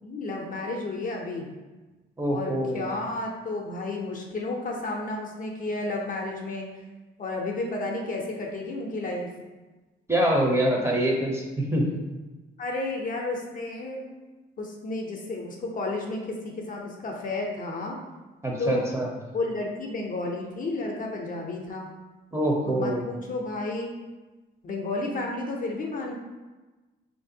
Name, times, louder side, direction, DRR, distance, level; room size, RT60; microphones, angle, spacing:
voice 1, 0.0-1.5 2.3-6.7 7.2-9.3 12.6-14.1 14.6-18.0 18.6-19.0 19.3-21.9 22.6-23.9 24.6-26.1, left 2 dB, 45° left, 0 dB, 0.5 m, -32 dB
voice 2, 2.2-2.8 10.1-11.9 18.4-19.1 22.3-23.0, right 1 dB, 15° right, -1 dB, 0.6 m, -25 dB
3.2 x 2.5 x 2.7 m, 1.2 s
cardioid pair, 90°, 20 cm